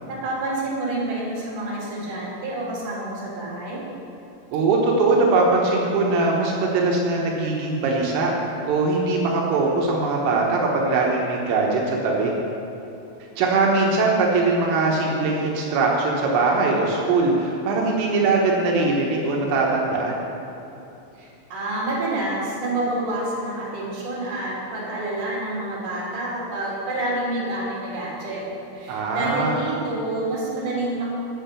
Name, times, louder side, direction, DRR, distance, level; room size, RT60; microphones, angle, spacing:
voice 1, 0.1-3.8 21.2-28.4 28.7-31.1, right 2 dB, 35° right, -7 dB, 3.5 m, -28 dB
voice 2, 4.5-8.3 8.7-12.3 13.4-20.2 28.9-29.6, right 3 dB, 80° right, -2 dB, 3.7 m, -21 dB
9.8 x 7.6 x 6.9 m, 2.9 s
omnidirectional pair, 5.8 m